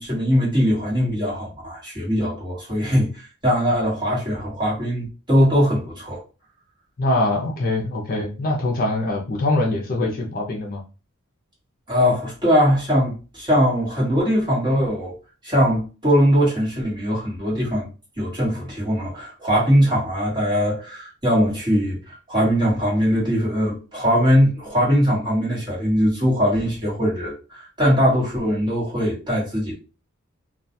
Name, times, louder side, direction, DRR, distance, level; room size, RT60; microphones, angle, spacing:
voice 1, 0.0-6.2 11.9-15.1 15.4-17.9 18.2-29.7, equal, 20° right, 1.2 m, -21 dB
voice 2, 7.0-10.8, left 2 dB, 45° left, 0.5 m, -23 dB
2.3 x 2.3 x 2.6 m
head